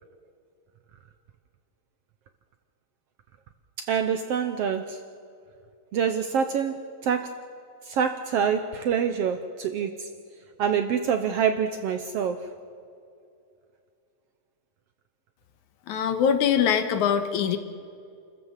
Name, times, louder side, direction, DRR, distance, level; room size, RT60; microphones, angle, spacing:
voice 1, 3.8-5.0 5.9-7.4 7.9-10.1 10.6-12.5, right 7 dB, 70° right, 8 dB, 1.5 m, -26 dB
voice 2, 15.9-17.6, left 8 dB, 75° left, 8 dB, 2.5 m, -23 dB
29.0 x 14.5 x 7.4 m, 2.4 s
omnidirectional pair, 3.6 m